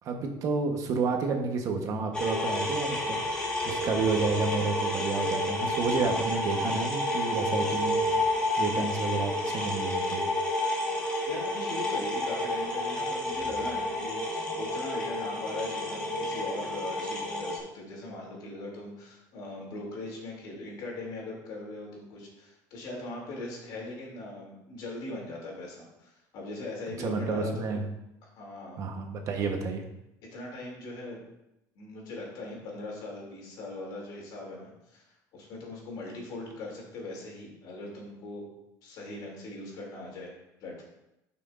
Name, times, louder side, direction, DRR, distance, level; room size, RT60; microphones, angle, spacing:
voice 1, 0.0-3.2 3.6-10.3 27.0-27.8 28.8-29.8, right 4 dB, 50° right, 4 dB, 1.0 m, -30 dB
sound 1, 2.1-17.6, left 1 dB, 10° left, 1.5 m, -30 dB
voice 2, 11.3-27.7 28.2-28.8 29.4-29.5 30.3-31.2 31.7-35.0 35.3-38.5 38.8-40.3 40.6-40.8, left 2 dB, 65° left, -2 dB, 2.7 m, -40 dB
12.0 x 5.8 x 2.5 m, 0.88 s
cardioid pair, 145°, 8 cm